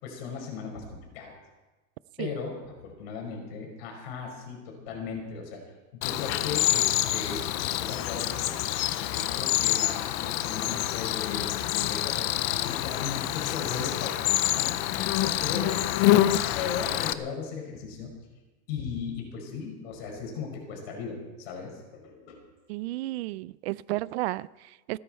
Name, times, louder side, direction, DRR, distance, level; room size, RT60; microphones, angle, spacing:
voice 1, 0.0-1.3 2.2-2.6 2.8-5.6 5.9-8.6 9.1-12.3 12.6-15.8 16.5-18.2 18.7-22.4, left 5 dB, 60° left, 1 dB, 5.4 m, -37 dB
Cricket, 6.0-17.1, left 14 dB, 30° left, 0.5 m, -27 dB
voice 2, 22.7-25.0, right 18 dB, 65° right, 20 dB, 0.5 m, -33 dB
29.5 x 10.5 x 4.4 m, 1.2 s
supercardioid pair, 175°, 35 cm